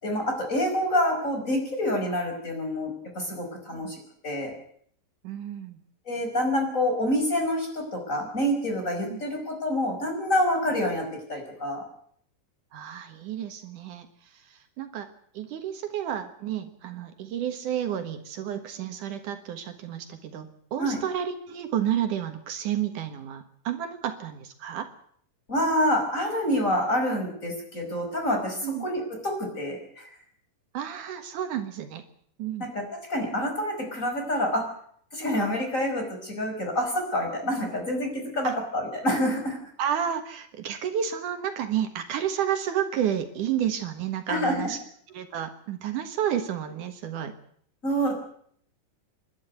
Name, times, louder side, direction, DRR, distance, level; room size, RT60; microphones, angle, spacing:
voice 1, 0.0-4.0 4.2-4.5 6.1-11.8 20.8-21.0 25.5-30.1 32.6-32.8 33.1-34.6 35.1-39.6 44.3-44.7 47.8-48.1, equal, 20° left, 3 dB, 5.5 m, -27 dB
voice 2, 5.2-5.8 9.1-9.2 12.7-14.1 14.3-15.1 15.3-24.9 28.6-28.9 30.7-32.0 32.4-32.7 38.4-38.5 39.8-44.8 45.1-47.3, right 9 dB, 70° right, 7 dB, 2.9 m, -31 dB
28.5 x 12.0 x 9.4 m, 0.65 s
omnidirectional pair, 3.8 m